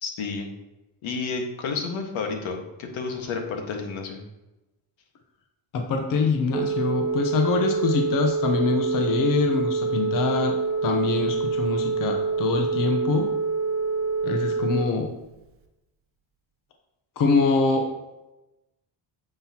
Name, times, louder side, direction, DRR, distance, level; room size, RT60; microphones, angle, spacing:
voice 1, 0.0-0.5 1.0-4.2, left 4 dB, 80° left, 3 dB, 1.7 m, -31 dB
voice 2, 5.7-10.5 10.8-13.3 14.2-15.1 17.2-17.9, left 4 dB, 45° left, 3 dB, 0.9 m, -24 dB
Telephone, 6.5-14.9, right 4 dB, 30° right, 0.8 m, -26 dB
9.6 x 7.8 x 2.9 m, 1.0 s
cardioid pair, 165°, 47 cm